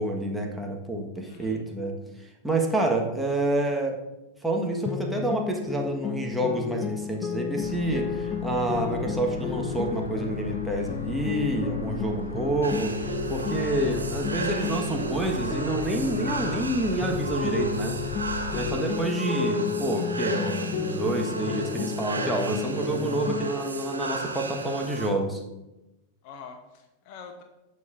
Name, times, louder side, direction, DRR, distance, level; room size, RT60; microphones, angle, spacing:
voice 1, 0.0-2.0 2.4-4.0 4.4-12.9 13.3-18.0 18.5-25.4, right 1 dB, 5° right, 0 dB, 1.4 m, -28 dB
voice 2, 1.2-1.6 18.8-19.1 26.2-27.4, left 5 dB, 45° left, 6 dB, 0.8 m, -46 dB
sound 1, 4.9-16.7 17.0-23.5, left 7 dB, 25° left, 0.4 m, -33 dB
sound 2, 7.6-18.7, left 2 dB, 80° left, 0.9 m, -37 dB
sound 3, 12.6-25.1, right 3 dB, 80° right, 0.9 m, -33 dB
16.0 x 5.5 x 2.6 m, 0.98 s
figure-of-eight pair, 90°, 0 cm